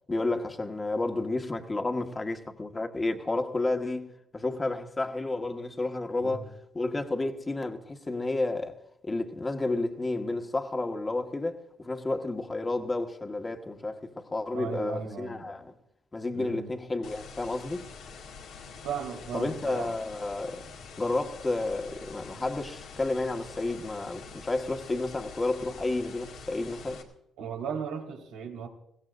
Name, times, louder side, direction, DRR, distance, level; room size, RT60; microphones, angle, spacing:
voice 1, 0.1-15.7 16.1-17.9 19.3-20.6 21.0-27.0, left 2 dB, 25° left, 1.5 m, -31 dB
voice 2, 14.5-15.5 16.3-16.7 18.8-19.9 27.4-28.7, right 6 dB, 90° right, 2.9 m, -36 dB
sound 1, 17.0-27.0, left 5 dB, 80° left, 2.0 m, -46 dB
21.5 x 16.5 x 2.6 m
supercardioid pair, 65°, 0 cm